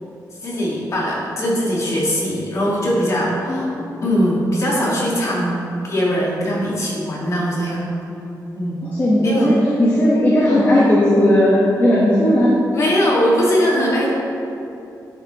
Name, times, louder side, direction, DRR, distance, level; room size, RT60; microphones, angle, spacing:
voice 1, 0.4-3.6 4.0-7.9 8.5-8.9 9.2-9.5 12.7-14.1, equal, 45° left, -5 dB, 2.0 m, -20 dB
voice 2, 3.5-4.0 8.8-12.5, left 1 dB, 30° left, -8 dB, 1.2 m, -16 dB
9.9 x 7.5 x 3.1 m, 2.8 s
wide cardioid pair, 150°, 7 cm